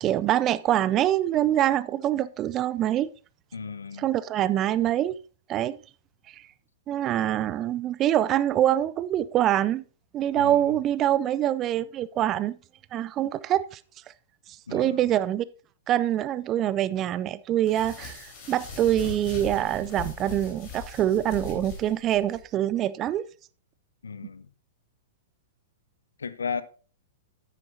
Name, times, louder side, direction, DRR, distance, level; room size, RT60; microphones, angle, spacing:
voice 1, 0.0-3.1 4.0-5.2 5.5-5.8 6.3-6.4 6.9-9.8 10.1-12.6 12.9-13.8 14.7-15.4 15.9-23.3, right 12 dB, 30° right, 0.4 m, -25 dB
voice 2, 3.5-4.1 10.4-10.8 14.7-15.1 24.0-24.5 26.2-26.6, left 5 dB, 75° left, 0.6 m, -35 dB
sound 1, 17.6-22.4, left 5 dB, 40° left, 3.8 m, -40 dB
9.6 x 9.0 x 2.7 m
figure-of-eight pair, 105°, 0 cm